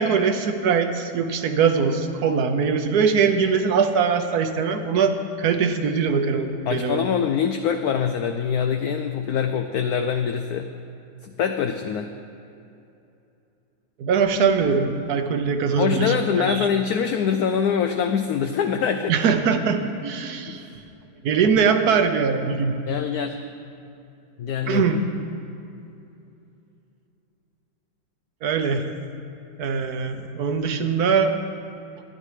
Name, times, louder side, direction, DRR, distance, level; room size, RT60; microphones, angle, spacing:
voice 1, 0.0-7.0 14.0-16.7 19.1-20.7 21.2-22.8 24.7-25.0 28.4-28.8 29.6-31.3, right 5 dB, 60° right, 7 dB, 1.3 m, -22 dB
voice 2, 6.7-10.7 11.2-12.1 15.8-19.1 20.5-20.8 22.9-23.4 24.4-24.8, left 7 dB, 70° left, 6 dB, 0.9 m, -24 dB
14.0 x 10.5 x 4.9 m, 2.8 s
omnidirectional pair, 2.0 m